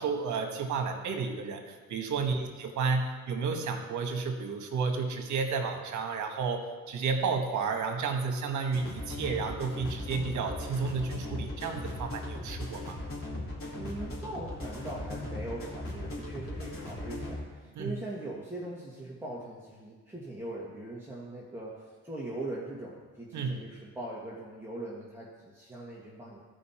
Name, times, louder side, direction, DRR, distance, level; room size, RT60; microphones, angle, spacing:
voice 1, 0.0-13.0 17.7-17.9 23.3-23.6, right 5 dB, 75° right, 4 dB, 1.4 m, -32 dB
sound 1, 8.7-17.4, left 1 dB, 45° left, 3.1 m, -38 dB
voice 2, 13.8-26.4, right 1 dB, 10° right, -6 dB, 1.7 m, -41 dB
14.5 x 5.3 x 4.3 m, 1.4 s
cardioid pair, 90°, 30 cm